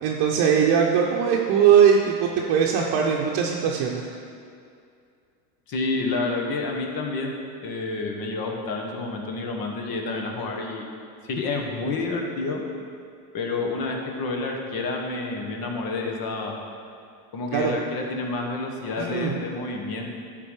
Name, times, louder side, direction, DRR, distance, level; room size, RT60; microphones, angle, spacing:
voice 1, 0.0-4.0 17.5-17.7 19.0-19.3, right 7 dB, 50° right, -1 dB, 0.9 m, -20 dB
voice 2, 5.7-7.3 7.6-10.8 11.2-12.6 13.3-16.6 17.3-20.2, left 3 dB, 45° left, 1 dB, 1.4 m, -29 dB
11.0 x 4.0 x 4.8 m, 2.4 s
supercardioid pair, 100°, 48 cm